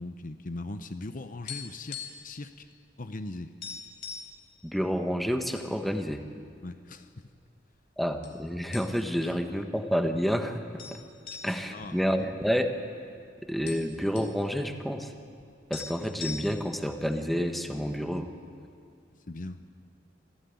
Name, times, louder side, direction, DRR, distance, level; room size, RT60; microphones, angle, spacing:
voice 1, 0.0-2.7 3.0-3.5 6.6-7.1 11.7-12.0 19.3-19.6, left 2 dB, 45° left, 9 dB, 0.8 m, -39 dB
sound 1, 1.5-2.4 2.6-2.8 3.2-3.3 3.6-4.4 5.0-5.7 6.1-6.2 6.9-7.5 8.2-8.4 8.7-9.3 9.6-9.7 10.8-12.8 13.1-13.2 13.4-14.4 15.4-15.5 15.7-16.8, left 6 dB, 70° left, 3.8 m, -41 dB
voice 2, 4.6-6.2 8.0-11.0 11.4-12.7 13.5-15.1 15.7-18.3, equal, ahead, 6 dB, 1.3 m, -29 dB
26.5 x 15.5 x 9.4 m, 2.3 s
head